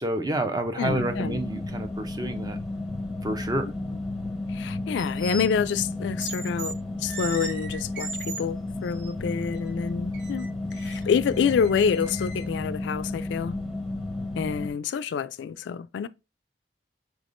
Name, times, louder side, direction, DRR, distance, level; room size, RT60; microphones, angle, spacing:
voice 1, 0.0-2.6 3.2-3.7, right 1 dB, 20° right, 0.5 m, -29 dB
voice 2, 0.8-1.4 4.5-13.6 14.4-16.1, left 6 dB, 85° left, 0.3 m, -27 dB
sound 1, 0.8-14.7, left 2 dB, ahead, 0.9 m, -33 dB
sound 2, 5.0-5.5 6.2-6.7 7.1-8.4 8.8-9.1 9.5-9.7 10.1-12.4, right 4 dB, 80° right, 1.1 m, -38 dB
4.8 x 3.4 x 2.5 m
head